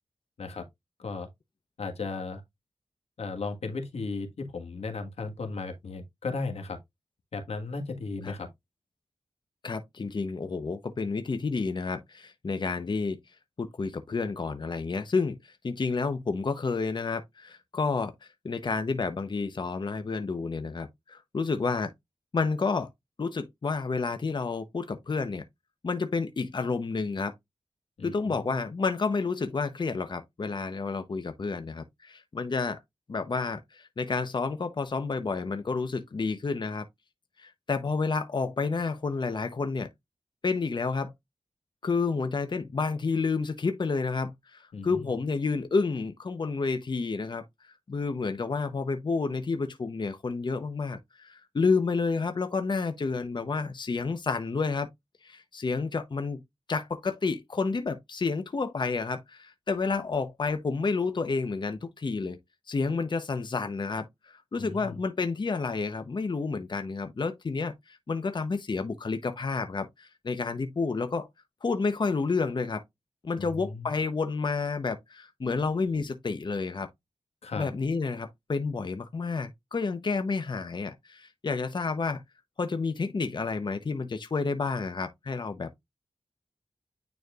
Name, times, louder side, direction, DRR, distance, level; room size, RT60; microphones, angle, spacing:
voice 1, 1.8-2.4 3.2-6.8 7.3-8.5 28.0-28.5 44.7-45.1 64.6-65.0 73.4-73.9 77.4-77.7, left 3 dB, 85° left, 1.5 m, -35 dB
voice 2, 9.6-13.2 13.6-21.9 22.3-22.9 23.2-25.4 25.8-27.3 28.0-32.8 33.1-36.9 37.4-39.9 40.4-41.1 41.8-47.4 47.9-54.9 55.2-56.4 56.7-62.4 62.7-71.3 71.6-72.8 73.2-76.9 77.5-82.2 82.6-85.8, left 4 dB, 45° left, 0.8 m, -30 dB
9.4 x 4.3 x 2.4 m
wide cardioid pair, 80°, 10 cm